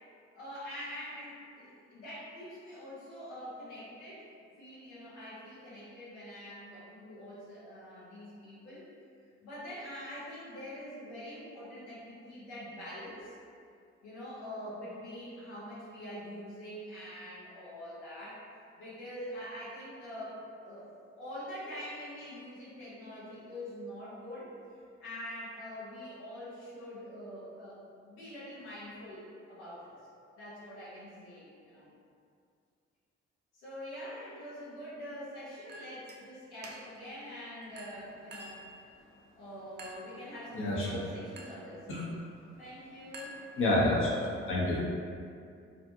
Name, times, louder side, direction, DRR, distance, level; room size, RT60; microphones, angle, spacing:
voice 1, 0.3-8.9 9.4-13.3 14.0-18.4 18.8-24.5 25.0-30.0 30.4-31.9 33.5-39.0 39.3-41.9 42.6-43.3, equal, 80° left, -9 dB, 0.7 m, -45 dB
Chink clink, 35.7-36.2 36.6-37.1 37.8-38.7 39.8-40.2 41.4-41.7 43.1-43.9, right 1 dB, 30° right, 0.4 m, -48 dB
voice 2, 40.6-40.9 41.9-42.0 43.6-44.8, left 1 dB, 40° left, -5 dB, 0.8 m, -28 dB
2.4 x 2.4 x 2.6 m, 2.4 s
hypercardioid pair, 40°, 33 cm